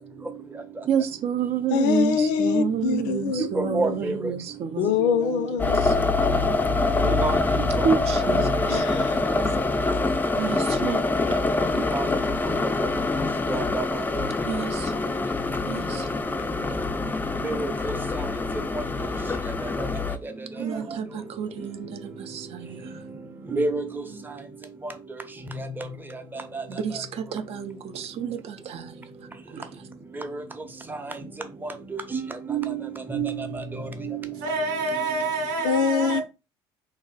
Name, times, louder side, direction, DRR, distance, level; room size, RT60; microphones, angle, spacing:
voice 1, 0.9-5.5 5.8-5.9 7.8-8.9 10.4-11.7 14.5-15.1 15.7-16.1 20.6-22.8 26.7-28.9 29.5-29.7, right 7 dB, 55° right, 0.5 m, -30 dB
voice 2, 1.7-4.0 4.8-6.0 8.7-9.3 35.6-36.2, left 6 dB, 80° left, 0.4 m, -24 dB
voice 3, 3.4-4.2 7.0-7.4 7.8-8.0 11.7-12.1 13.5-13.8 17.4-17.7 18.7-18.8 19.8-19.9 23.5-23.8 24.8-24.9 25.8-25.9 26.5-26.6 30.2-30.3 31.6-32.8 33.1-34.3, right 3 dB, 15° right, 0.7 m, -28 dB
sound 1, 5.6-20.2, left 3 dB, 15° left, 0.3 m, -25 dB
voice 4, 20.5-20.9 24.0-24.2 34.3-36.2, right 2 dB, 85° right, 0.9 m, -28 dB
2.5 x 2.0 x 3.8 m
supercardioid pair, 75°, 12 cm